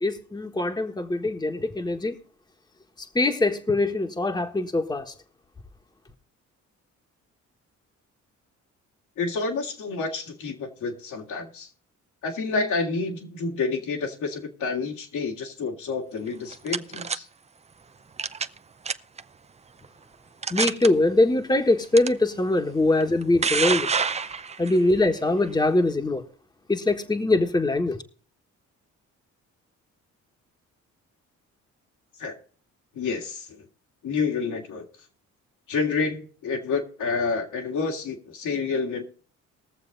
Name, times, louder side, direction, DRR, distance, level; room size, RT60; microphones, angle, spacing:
voice 1, 0.0-2.1 3.1-5.1 20.5-23.9 24.6-26.2 26.7-28.0, left 2 dB, 15° left, 5 dB, 1.5 m, -23 dB
voice 2, 9.2-11.7 12.2-17.3 32.2-32.3 32.9-33.6 34.0-34.8 35.7-39.0, left 4 dB, 75° left, 1 dB, 2.8 m, -29 dB
sound 1, 16.3-17.2 18.2-18.6 18.9-19.2 19.8-19.9 20.4-20.9 22.0-22.1 23.0-24.8, right 5 dB, 20° right, 0.6 m, -26 dB
20.5 x 7.1 x 4.0 m, 0.43 s
cardioid pair, 90°, 30 cm